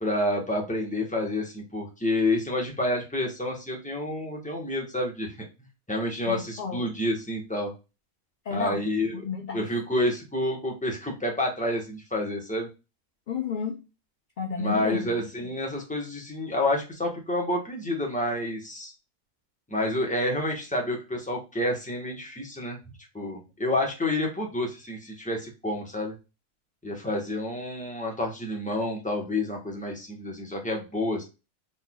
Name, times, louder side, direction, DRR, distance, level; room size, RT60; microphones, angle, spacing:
voice 1, 0.0-5.4 5.9-7.7 8.5-9.1 9.5-12.7 14.6-18.9 19.7-22.8 23.1-26.1 26.8-31.2, left 1 dB, 5° left, 1 dB, 1.1 m, -29 dB
voice 2, 6.3-6.8 8.5-8.8 9.1-9.7 13.3-13.8 14.4-15.1, left 5 dB, 50° left, 3 dB, 0.6 m, -31 dB
4.1 x 4.0 x 2.3 m, 0.28 s
omnidirectional pair, 1.5 m